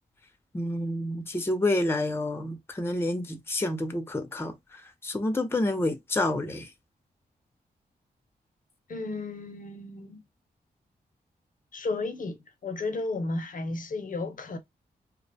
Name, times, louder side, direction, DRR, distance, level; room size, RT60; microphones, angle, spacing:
voice 1, 0.5-6.7, left 1 dB, 15° left, 0.5 m, -29 dB
voice 2, 8.9-10.2 11.7-12.4 12.6-14.6, left 3 dB, 55° left, 0.5 m, -33 dB
2.4 x 2.1 x 2.6 m
cardioid pair, 70°, 17 cm